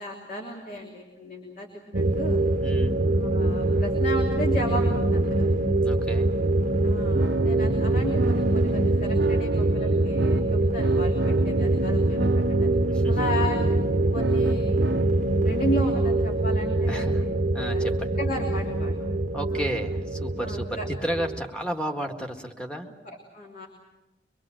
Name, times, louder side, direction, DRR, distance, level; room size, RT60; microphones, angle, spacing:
voice 1, 0.0-2.4 3.3-5.6 6.8-12.7 13.1-13.7 14.1-15.0 15.4-17.1 17.6-17.8 18.2-18.9 19.5-19.7 20.4-20.9 23.0-23.7, equal, 50° left, 0 dB, 3.2 m, -34 dB
sound 1, 1.9-21.4, right 2 dB, 45° right, 1.0 m, -24 dB
voice 2, 2.6-3.0 5.8-6.3 12.9-13.3 16.9-17.2 17.5-18.1 19.3-22.9, equal, 5° left, 1 dB, 1.8 m, -32 dB
sound 2, 7.1-15.1, right 2 dB, 70° right, 0.8 m, -31 dB
24.5 x 24.0 x 7.8 m, 1.1 s
head